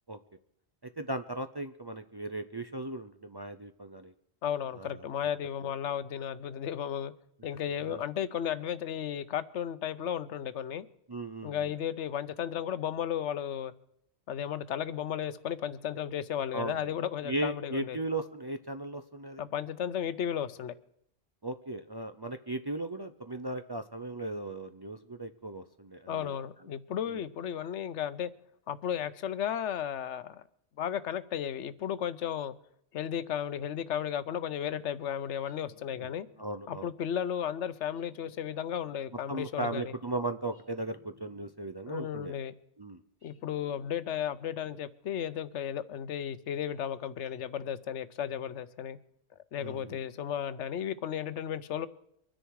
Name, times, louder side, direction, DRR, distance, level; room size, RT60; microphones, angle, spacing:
voice 1, 0.8-4.1 4.7-5.1 5.6-5.7 7.8-8.0 11.1-11.7 16.5-16.9 17.2-19.4 21.4-26.4 27.1-27.2 36.0-36.1 36.4-36.9 39.3-42.4 42.8-43.0 49.6-50.0, right 2 dB, 30° right, 0.5 m, -37 dB
voice 2, 4.4-7.1 7.4-10.8 11.4-13.7 14.3-18.0 19.4-20.8 26.1-28.3 28.7-30.4 30.8-32.5 32.9-36.3 36.7-39.9 41.9-42.5 43.2-49.0 49.5-51.9, left 9 dB, 85° left, 1.0 m, -34 dB
sound 1, 35.4-36.8 37.9-39.2 40.5-41.9 43.2-44.6, left 2 dB, 50° right, 5.4 m, -61 dB
24.0 x 10.0 x 4.7 m
omnidirectional pair, 1.2 m